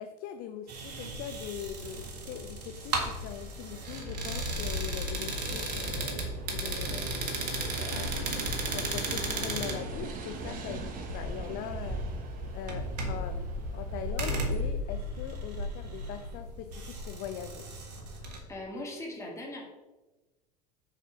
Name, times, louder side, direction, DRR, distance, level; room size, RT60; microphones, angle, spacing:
voice 1, 0.0-7.5 7.8-12.0 12.5-17.6, left 9 dB, 45° left, 7 dB, 0.6 m, -42 dB
sound 1, 0.7-18.4, right 1 dB, 65° right, 1.6 m, -35 dB
sound 2, 5.7-14.6, right 3 dB, 40° right, 1.2 m, -40 dB
voice 2, 18.5-19.6, left 1 dB, 15° left, -2 dB, 2.2 m, -39 dB
7.0 x 4.7 x 5.8 m, 1.1 s
figure-of-eight pair, 70°, 21 cm